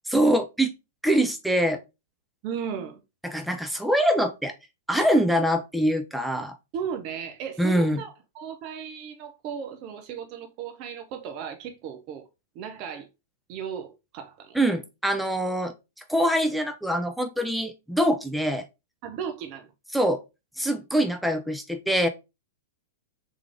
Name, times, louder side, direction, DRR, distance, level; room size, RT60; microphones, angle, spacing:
voice 1, 0.1-0.7 1.0-1.8 3.2-4.5 4.9-6.6 7.6-8.0 14.5-15.7 16.1-18.6 19.9-20.2 20.6-22.1, equal, ahead, 0.6 m, -24 dB
voice 2, 2.4-3.0 6.7-12.2 12.5-13.1 13.5-14.6 19.0-19.7, right 7 dB, 40° right, 0.6 m, -35 dB
3.6 x 3.2 x 3.4 m
figure-of-eight pair, 105°, 0 cm